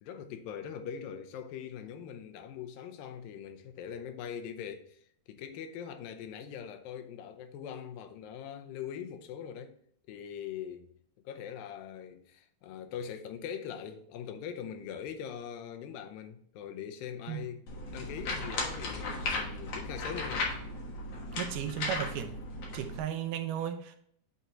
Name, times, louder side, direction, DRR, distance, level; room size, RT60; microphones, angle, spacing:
voice 1, 0.0-5.0 5.3-9.8 10.1-10.9 11.3-17.7 17.9-20.5, left 8 dB, 80° left, 2.4 m, -42 dB
sound 1, 17.7-23.0, left 2 dB, 55° left, 2.0 m, -36 dB
voice 2, 21.4-22.4 22.7-24.0, right 10 dB, 75° right, 2.0 m, -35 dB
8.2 x 3.9 x 4.3 m
omnidirectional pair, 4.2 m